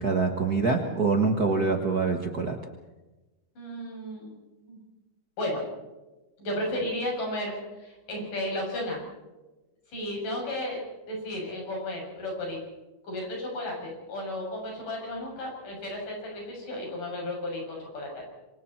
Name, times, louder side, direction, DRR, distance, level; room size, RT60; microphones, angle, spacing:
voice 1, 0.0-2.6, right 4 dB, 45° right, 3 dB, 1.3 m, -25 dB
voice 2, 3.6-4.4 4.7-4.8 5.4-5.6 6.4-9.0 9.9-12.6 13.0-18.2, left 1 dB, 80° left, -1 dB, 8.6 m, -33 dB
27.0 x 24.0 x 4.4 m, 1.1 s
omnidirectional pair, 3.7 m